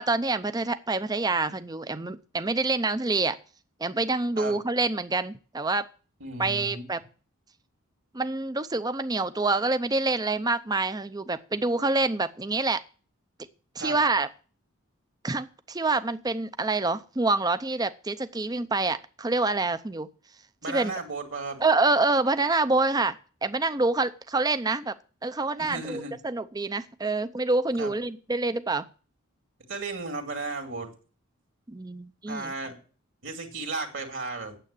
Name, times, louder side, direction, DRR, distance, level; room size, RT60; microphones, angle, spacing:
voice 1, 0.0-3.4 3.8-5.9 6.4-7.0 8.1-12.8 13.8-14.3 15.2-20.1 20.7-20.9 21.6-24.9 25.2-28.9 31.7-32.5, right 3 dB, 20° right, 12 dB, 0.6 m, -26 dB
voice 2, 6.2-6.9 13.8-14.0 20.6-21.6 25.6-26.1 27.8-27.9 29.7-30.9 32.3-32.8 33.2-34.6, right 3 dB, 60° right, 4 dB, 2.3 m, -34 dB
9.2 x 7.7 x 8.5 m, 0.38 s
head